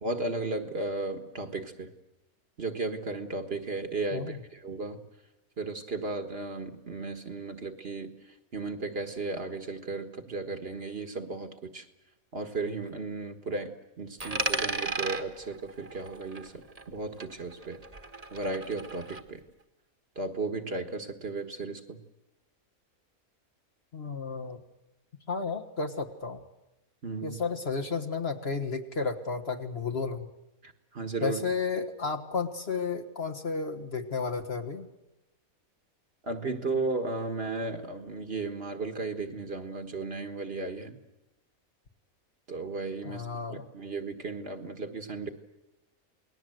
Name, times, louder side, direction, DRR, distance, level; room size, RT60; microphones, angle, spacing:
voice 1, 0.0-1.9 2.6-5.0 5.6-8.2 8.5-11.9 12.3-16.6 16.9-17.8 18.3-19.4 20.2-22.0 27.0-27.4 30.6-31.4 36.3-41.0 42.5-45.3, right 3 dB, 45° right, 7 dB, 1.7 m, -35 dB
Coin (dropping), 14.2-17.0 17.2-19.2, right 2 dB, 25° right, 1.5 m, -35 dB
voice 2, 23.9-24.6 25.3-26.4 27.2-30.3 31.2-34.9 43.0-43.7, left 4 dB, 45° left, 6 dB, 1.8 m, -32 dB
28.5 x 19.5 x 7.9 m, 0.96 s
omnidirectional pair, 1.5 m